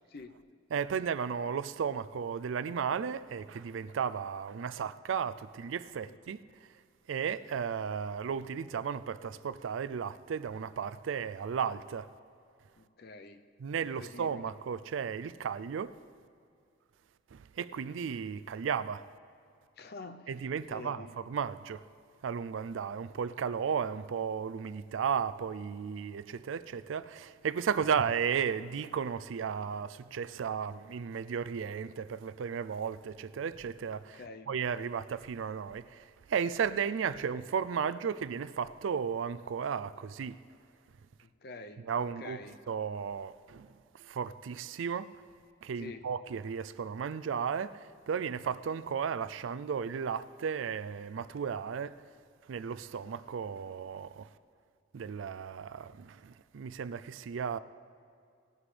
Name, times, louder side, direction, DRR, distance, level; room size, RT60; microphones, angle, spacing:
voice 1, 0.7-6.4 7.1-12.1 13.6-15.9 17.3-19.0 20.3-21.8 22.2-34.2 34.5-40.4 41.8-42.4 42.7-43.7 43.9-45.1 45.6-52.0 52.5-54.3 54.9-57.6, right 7 dB, 80° right, 0.4 m, -34 dB
voice 2, 12.8-13.5 14.0-14.4 19.8-21.1 34.1-34.5 41.2-42.6 45.8-46.1, left 3 dB, 55° left, 0.6 m, -47 dB
18.0 x 11.0 x 3.3 m
head